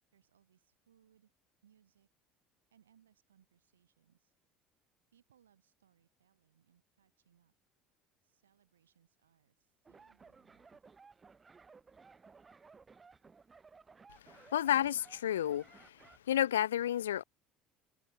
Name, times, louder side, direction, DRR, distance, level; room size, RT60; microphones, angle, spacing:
voice 1, 0.1-1.3 1.6-2.1 2.7-4.3 5.1-7.5 8.2-10.7, right 9 dB, 85° right, 6.6 m, -71 dB
sound 1, 9.8-16.2, right 4 dB, 25° right, 1.5 m, -59 dB
voice 2, 14.5-16.0 16.3-17.2, left 11 dB, 85° left, 0.3 m, -31 dB
hypercardioid pair, 70°, 0 cm